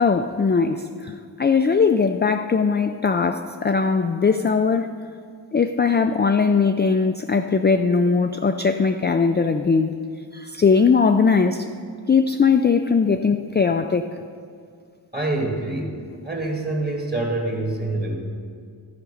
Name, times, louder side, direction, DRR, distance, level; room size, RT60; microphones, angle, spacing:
voice 1, 0.0-4.9 5.5-10.0 10.3-11.7 12.1-14.1, left 5 dB, 25° left, 7 dB, 0.3 m, -20 dB
voice 2, 15.1-18.1, right 2 dB, 20° right, 0 dB, 1.9 m, -26 dB
12.0 x 5.1 x 6.5 m, 2.2 s
wide cardioid pair, 60°, 42 cm